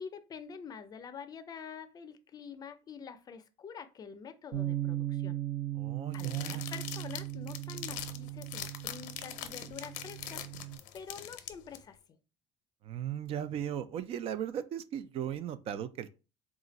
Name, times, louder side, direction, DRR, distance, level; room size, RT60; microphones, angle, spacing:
voice 1, 0.0-5.4 6.1-10.4 10.9-12.0, left 6 dB, 30° left, 0.4 m, -46 dB
Bass guitar, 4.5-10.8, right 13 dB, 70° right, 0.8 m, -38 dB
voice 2, 5.8-6.6 12.8-16.1, right 10 dB, 50° right, 0.4 m, -37 dB
sound 1, 6.1-11.8, left 12 dB, 80° left, 0.6 m, -42 dB
3.7 x 2.4 x 3.9 m
cardioid pair, 135°, 13 cm